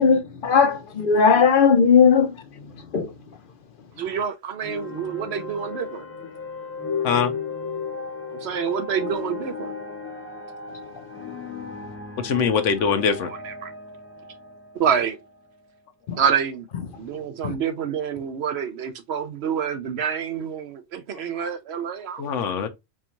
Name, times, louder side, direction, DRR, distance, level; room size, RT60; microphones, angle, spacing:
voice 1, 0.0-2.4 2.9-3.1 16.1-16.2 17.4-17.5, left 6 dB, 55° left, 0.7 m, -17 dB
voice 2, 4.0-6.0 8.3-9.7 13.4-13.7 14.7-15.2 16.2-16.7 17.0-22.6, right 7 dB, 65° right, 0.7 m, -27 dB
sound 1, 4.6-15.8, left 5 dB, 15° left, 0.7 m, -35 dB
voice 3, 12.2-13.3 22.2-22.7, left 6 dB, 75° left, 1.0 m, -22 dB
4.4 x 2.3 x 2.8 m
omnidirectional pair, 1.3 m